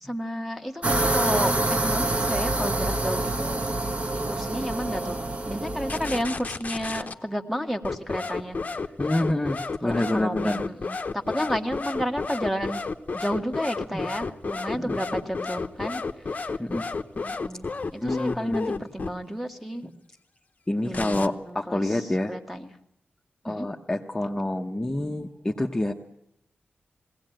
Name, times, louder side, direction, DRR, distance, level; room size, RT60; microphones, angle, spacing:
voice 1, 0.0-3.6 4.2-8.6 9.8-12.8 13.1-16.0 16.4-16.6 17.1-19.9 20.8-22.7 23.4-23.7, equal, ahead, 6 dB, 1.3 m, -32 dB
sound 1, 0.8-6.2, right 2 dB, 30° right, 1.1 m, -26 dB
sound 2, 5.9-7.2 7.8-19.1 20.9-21.3, left 4 dB, 40° left, 0.9 m, -31 dB
voice 2, 9.0-10.6 13.9-14.0 14.7-14.9 16.6-16.9 18.0-18.8 20.7-22.3 23.4-25.9, left 1 dB, 15° left, 1 dB, 0.9 m, -27 dB
21.5 x 17.0 x 8.9 m, 0.75 s
wide cardioid pair, 140°, 4 cm